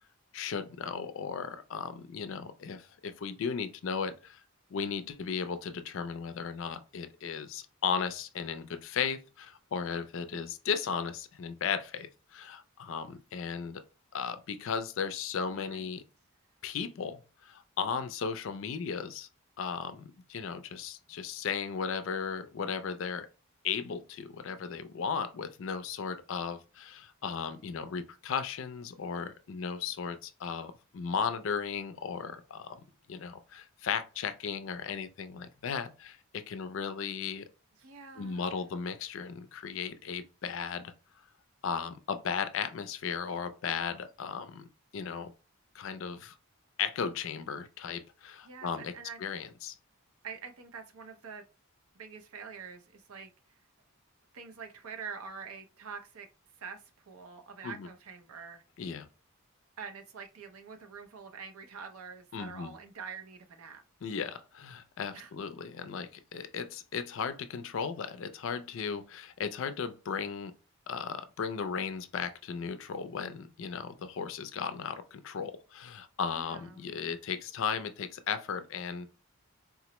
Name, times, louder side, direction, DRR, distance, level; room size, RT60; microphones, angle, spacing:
voice 1, 0.3-4.4 4.7-13.8 14.1-16.0 16.6-19.3 19.6-23.3 23.6-37.5 38.2-40.9 41.6-44.7 44.9-45.3 45.7-46.3 46.8-48.9 49.2-49.8 57.6-57.9 58.8-59.1 62.3-62.7 64.0-70.5 70.9-79.1, left 6 dB, 60° left, 0.4 m, -36 dB
voice 2, 37.8-38.5 48.4-49.2 50.2-51.4 51.9-53.6 54.3-56.3 56.6-58.6 59.8-63.8 65.1-65.3 76.3-76.9, right 6 dB, 80° right, 0.6 m, -45 dB
3.7 x 2.0 x 2.9 m
head